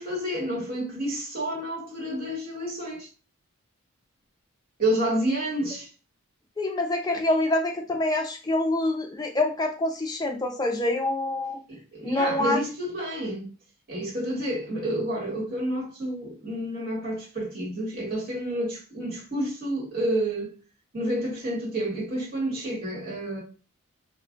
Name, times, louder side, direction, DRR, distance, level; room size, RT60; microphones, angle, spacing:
voice 1, 0.0-3.1 4.8-5.9 11.7-13.5 13.9-20.5 20.9-23.4, right 1 dB, 40° right, 1.3 m, -29 dB
voice 2, 6.6-11.6 12.0-12.6, left 1 dB, 15° left, 0.4 m, -26 dB
2.3 x 2.1 x 3.7 m
head